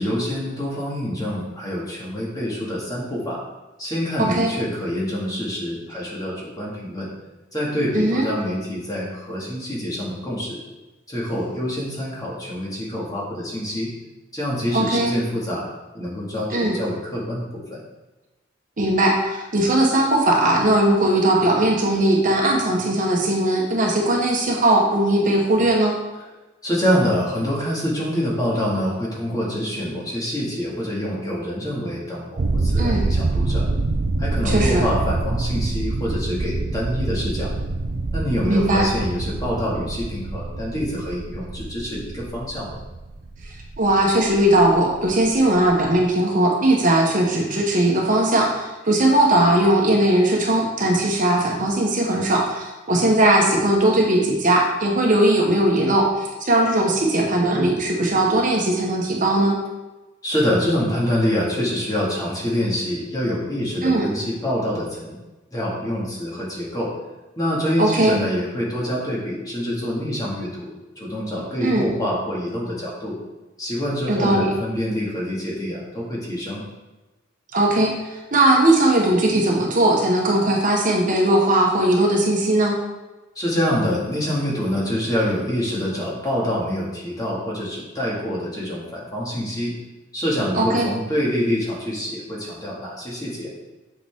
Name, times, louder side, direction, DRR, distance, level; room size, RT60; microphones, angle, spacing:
voice 1, 0.0-3.4 3.8-7.1 7.5-10.6 11.1-13.9 14.3-15.7 15.9-17.8 26.6-33.7 34.2-37.5 38.1-42.7 60.2-65.2 65.5-66.9 67.4-73.2 73.6-76.6 83.4-89.8 90.1-93.5, equal, 20° left, -5 dB, 2.1 m, -26 dB
voice 2, 4.2-4.5 7.9-8.3 14.7-15.1 16.5-16.8 18.8-26.0 32.8-33.1 34.4-34.8 38.4-38.9 43.8-59.6 63.8-64.1 67.8-68.2 71.6-71.9 74.1-74.5 77.5-77.9 78.3-82.8 90.6-90.9, right 1 dB, 45° right, -1 dB, 1.3 m, -19 dB
sound 1, 32.4-46.0, right 2 dB, 65° right, 0.6 m, -26 dB
7.9 x 5.8 x 3.6 m, 1.1 s
head